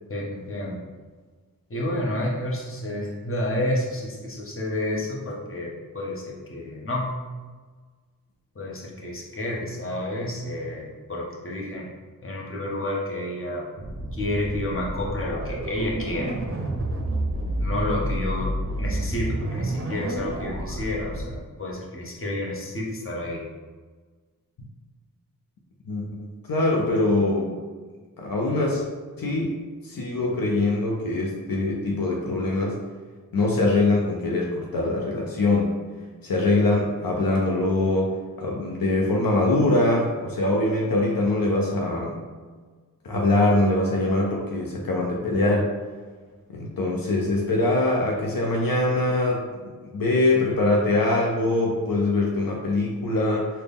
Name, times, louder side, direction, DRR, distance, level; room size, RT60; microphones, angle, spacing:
voice 1, 0.1-0.8 1.7-7.1 8.6-11.9 12.2-13.6 14.1-16.3 17.6-18.5 18.8-23.4, left 1 dB, 40° left, -3 dB, 0.9 m, -30 dB
sound 1, 13.8-21.4, right 1 dB, 40° right, 0.6 m, -30 dB
voice 2, 25.9-27.6 28.2-28.8 29.2-29.5 29.8-32.8 33.3-35.7 36.2-38.1 38.4-42.2 43.0-45.7 46.5-49.4 49.9-53.5, left 2 dB, 80° left, -2 dB, 0.6 m, -23 dB
4.0 x 2.1 x 3.5 m, 1.4 s
wide cardioid pair, 65°, 34 cm